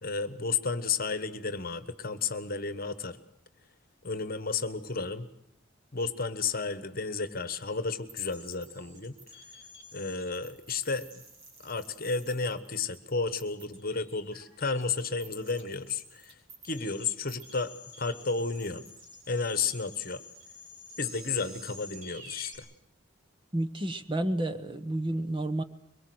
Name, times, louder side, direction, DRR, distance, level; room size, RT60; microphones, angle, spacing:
voice 1, 0.0-3.2 4.0-5.3 5.9-9.1 9.9-11.2 11.6-16.3 16.6-17.7 18.0-18.8 19.3-20.2 21.0-22.6, left 4 dB, 45° left, 12 dB, 1.3 m, -32 dB
sound 1, 8.1-22.6, left 1 dB, 70° right, 6.3 m, -50 dB
voice 2, 23.5-25.6, right 1 dB, 25° right, 10 dB, 1.0 m, -30 dB
23.0 x 22.0 x 7.9 m, 0.72 s
head